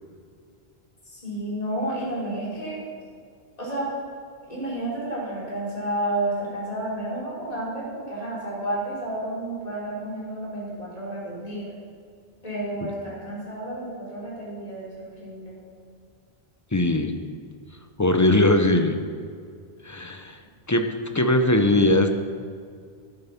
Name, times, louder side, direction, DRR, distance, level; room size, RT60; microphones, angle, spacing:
voice 1, 1.0-2.8 3.6-3.9 4.5-11.7 12.4-15.6, right 1 dB, 35° left, -7 dB, 3.9 m, -31 dB
voice 2, 16.7-17.2 18.0-19.0 19.8-20.4 20.7-22.1, left 1 dB, 20° left, 6 dB, 0.8 m, -20 dB
11.0 x 10.5 x 5.8 m, 2.2 s
omnidirectional pair, 1.1 m